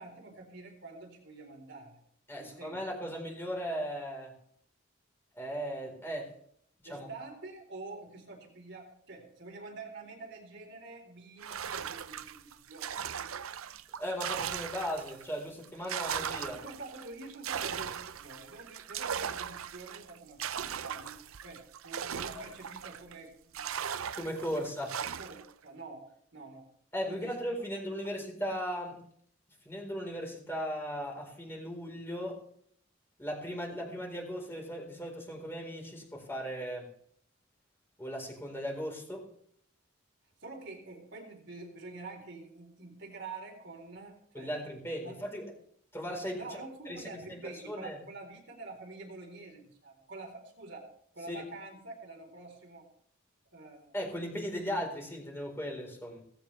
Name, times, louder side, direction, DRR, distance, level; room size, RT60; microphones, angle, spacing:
voice 1, 0.0-2.0 2.4-2.8 6.8-12.9 16.6-23.7 25.2-26.7 27.0-27.4 27.8-27.9 40.4-44.5 45.0-45.2 46.4-50.8 51.1-52.9 53.5-53.9, right 3 dB, 60° right, 3 dB, 4.1 m, -47 dB
voice 2, 2.3-4.3 5.3-6.3 6.9-7.1 14.0-16.6 24.1-25.0 26.9-29.0 29.6-32.4 33.2-36.9 38.0-39.3 44.3-45.5 45.9-46.6 46.9-48.0 51.3-51.4 53.9-56.2, equal, 10° left, 0 dB, 4.2 m, -37 dB
sound 1, 11.4-15.3 15.6-23.1 23.5-25.5, right 8 dB, 90° right, 0.6 m, -38 dB
18.0 x 16.0 x 3.4 m, 0.66 s
head